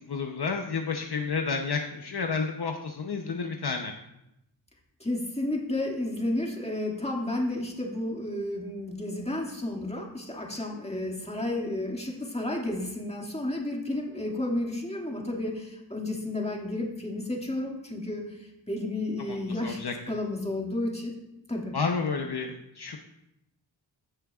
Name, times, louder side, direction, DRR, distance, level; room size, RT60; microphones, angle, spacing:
voice 1, 0.0-3.9 19.3-19.4 19.6-19.9 21.7-23.0, left 5 dB, 60° left, 3 dB, 0.9 m, -30 dB
voice 2, 5.0-21.1 21.5-21.8, left 1 dB, 15° left, -1 dB, 2.2 m, -32 dB
15.0 x 6.5 x 2.4 m, 0.85 s
cardioid pair, 45°, 45 cm